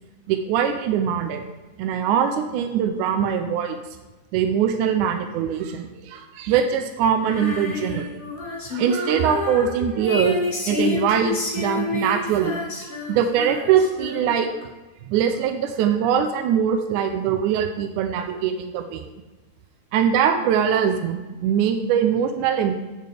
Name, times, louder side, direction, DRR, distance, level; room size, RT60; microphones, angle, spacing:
voice 1, 0.3-1.4 1.8-3.8 4.3-8.1 8.7-10.4 10.7-14.7 15.1-19.0 19.9-22.7, right 8 dB, 80° right, 6 dB, 2.0 m, -22 dB
Female singing, 7.2-14.6, left 3 dB, 25° left, 1.1 m, -29 dB
15.5 x 6.7 x 3.4 m, 1.2 s
omnidirectional pair, 3.7 m